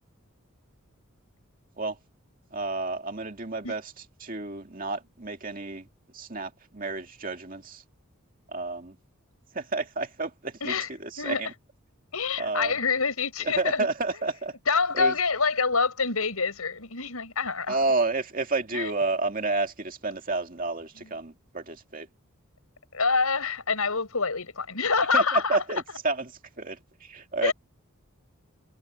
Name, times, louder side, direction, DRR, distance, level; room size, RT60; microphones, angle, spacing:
voice 1, 2.5-5.9 6.1-7.8 8.5-9.0 9.5-11.5 12.4-12.7 13.4-14.6 14.9-15.1 17.7-22.1 25.1-27.5, right 3 dB, 40° right, 2.3 m, -30 dB
voice 2, 12.1-13.9 14.7-17.8 18.7-18.9 22.9-25.6 27.4-27.5, left 4 dB, 90° left, 6.3 m, -26 dB
head